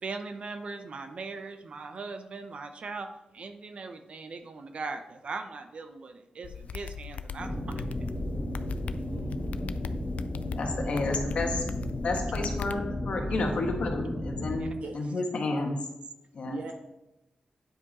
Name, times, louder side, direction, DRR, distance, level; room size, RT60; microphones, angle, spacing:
voice 1, 0.0-7.8 14.6-14.7, right 4 dB, 50° right, 8 dB, 0.6 m, -40 dB
sound 1, 6.4-12.8, left 7 dB, 80° left, 0.3 m, -40 dB
sound 2, 7.4-14.6, left 1 dB, 10° left, 1.2 m, -34 dB
voice 2, 9.0-9.7 14.8-15.2 16.4-16.7, right 3 dB, 80° right, 2 dB, 1.3 m, -40 dB
voice 3, 10.6-11.6 12.0-15.8 16.3-16.6, left 3 dB, 60° left, 2 dB, 1.3 m, -31 dB
9.4 x 5.1 x 4.1 m, 0.90 s
wide cardioid pair, 155°, 2 cm